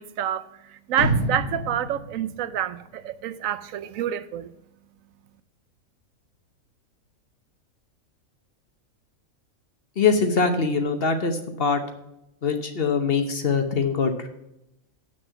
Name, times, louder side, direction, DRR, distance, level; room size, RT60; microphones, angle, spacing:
voice 1, 0.0-4.5, right 10 dB, 75° right, 1.0 m, -28 dB
sound 1, 1.0-3.1 3.5-3.6, right 1 dB, 85° left, 1.9 m, -29 dB
voice 2, 10.0-11.8 12.4-14.3, left 5 dB, 45° left, 1.1 m, -23 dB
7.9 x 6.4 x 6.8 m
omnidirectional pair, 1.4 m